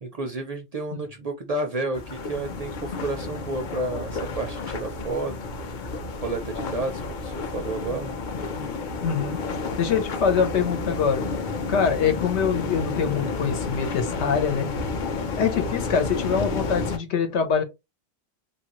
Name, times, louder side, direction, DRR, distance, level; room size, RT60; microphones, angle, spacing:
voice 1, 0.0-5.3 6.2-8.2, right 2 dB, 55° right, 0.4 m, -31 dB
sound 1, 1.9-17.0, left 3 dB, 55° left, 0.6 m, -31 dB
voice 2, 9.0-9.4 9.8-11.2 11.7-14.7 15.4-17.6, left 6 dB, 90° left, 1.1 m, -24 dB
2.8 x 2.5 x 2.9 m
omnidirectional pair, 1.1 m